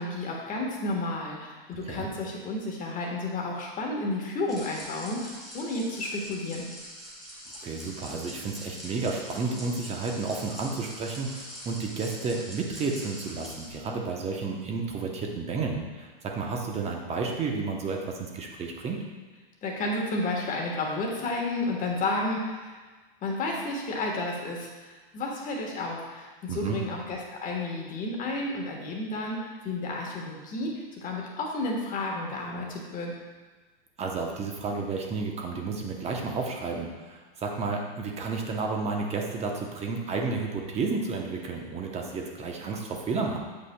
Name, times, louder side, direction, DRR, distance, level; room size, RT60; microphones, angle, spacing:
voice 1, 0.0-6.7 19.6-22.8 23.2-33.1, left 2 dB, 25° left, -1 dB, 1.3 m, -32 dB
sound 1, 4.5-13.7, equal, ahead, 1.5 m, -43 dB
voice 2, 7.6-19.0 26.5-26.8 34.0-43.4, right 4 dB, 20° right, 1 dB, 0.8 m, -31 dB
8.3 x 5.1 x 2.2 m, 1.3 s
hypercardioid pair, 125°, 29 cm